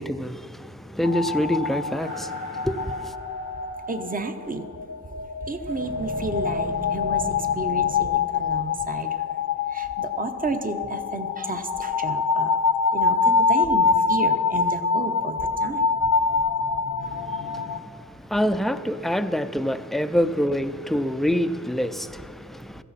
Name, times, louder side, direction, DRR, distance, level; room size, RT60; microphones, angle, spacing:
voice 1, 0.0-3.1 17.0-22.8, equal, ahead, 0.5 m, -26 dB
sound 1, 1.0-17.8, left 5 dB, 80° left, 0.7 m, -25 dB
sound 2, 2.0-4.0 5.7-8.0, equal, 65° right, 4.6 m, -39 dB
voice 2, 3.9-4.7 5.4-9.2 9.7-12.6 12.9-15.8, right 3 dB, 30° right, 1.0 m, -32 dB
16.5 x 14.5 x 4.2 m
wide cardioid pair, 80°, 30 cm